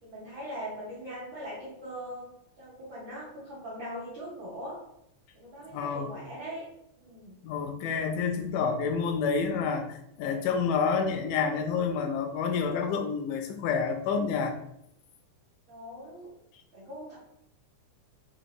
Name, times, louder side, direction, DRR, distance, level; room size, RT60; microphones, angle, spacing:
voice 1, 0.0-4.8 5.3-6.6 7.0-7.4 15.7-16.3 16.7-17.2, equal, 65° right, -7 dB, 1.2 m, -41 dB
voice 2, 5.7-6.1 7.4-14.5, left 5 dB, 90° left, 4 dB, 2.2 m, -29 dB
5.8 x 2.8 x 3.0 m, 0.79 s
omnidirectional pair, 3.6 m